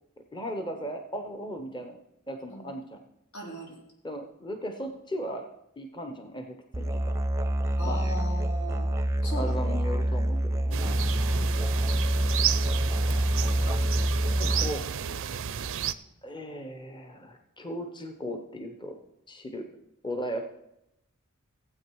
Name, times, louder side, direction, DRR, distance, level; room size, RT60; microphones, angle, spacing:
voice 1, 0.3-2.0 2.3-3.0 4.0-5.5 5.8-7.2 7.8-8.1 9.3-11.0 13.0-13.2 13.5-13.9 14.4-14.8 16.2-18.9 19.3-19.7 20.0-20.5, equal, 20° left, 5 dB, 0.9 m, -37 dB
voice 2, 3.3-3.8 7.8-8.9 9.2-9.6 11.3-11.6, equal, 85° left, -2 dB, 4.1 m, -39 dB
Musical instrument, 6.7-14.7, right 1 dB, 15° right, 0.6 m, -26 dB
sound 1, 10.7-15.9, right 9 dB, 65° right, 0.5 m, -32 dB
15.5 x 8.3 x 4.7 m, 0.84 s
head